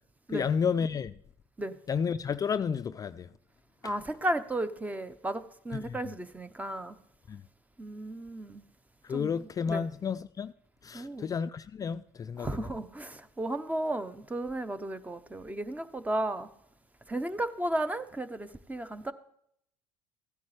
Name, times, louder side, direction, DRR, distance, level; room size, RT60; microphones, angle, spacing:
voice 1, 0.3-1.1 1.9-3.3 5.8-6.0 7.3-7.4 9.0-10.5 10.8-12.7, left 6 dB, 30° left, 0.3 m, -31 dB
voice 2, 3.8-7.0 7.8-8.6 9.1-9.9 10.9-11.3 12.4-16.5 17.1-19.1, right 1 dB, 10° right, 0.8 m, -34 dB
14.5 x 9.3 x 3.2 m
supercardioid pair, 85°, 12 cm